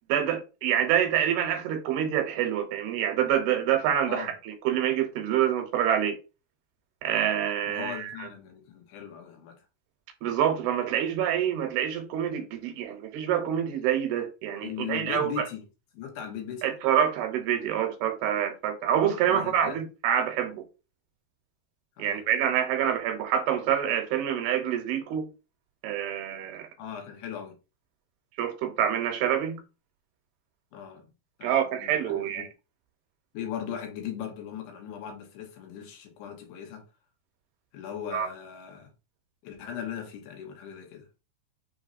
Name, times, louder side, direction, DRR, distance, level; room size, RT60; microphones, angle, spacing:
voice 1, 0.1-6.2 7.0-8.3 10.2-15.5 16.6-20.6 22.0-25.3 25.8-26.7 28.4-29.6 31.4-32.5 38.1-38.3, right 9 dB, 80° right, 2.4 m, -26 dB
voice 2, 7.7-9.6 14.6-15.6 15.9-16.8 19.3-19.8 22.0-22.2 26.8-27.6 30.7-31.1 31.4-32.4 33.3-36.9 37.7-38.9 39.4-41.1, left 8 dB, 85° left, 3.2 m, -38 dB
6.7 x 3.1 x 2.6 m
omnidirectional pair, 4.7 m